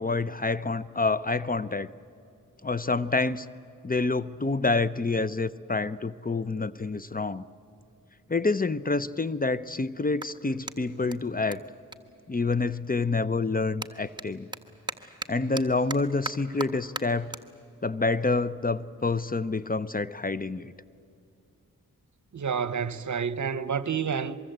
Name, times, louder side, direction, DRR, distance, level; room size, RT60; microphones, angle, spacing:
voice 1, 0.0-1.9 2.6-3.5 3.8-7.4 8.3-11.6 12.3-14.5 15.3-17.3 17.8-20.7, left 3 dB, 25° left, 0.6 m, -27 dB
Clapping, 10.1-12.9 13.2-19.8, right 2 dB, 15° right, 1.4 m, -42 dB
voice 2, 22.3-24.4, right 6 dB, 60° right, 0.9 m, -29 dB
23.5 x 23.5 x 8.0 m
cardioid pair, 45°, 34 cm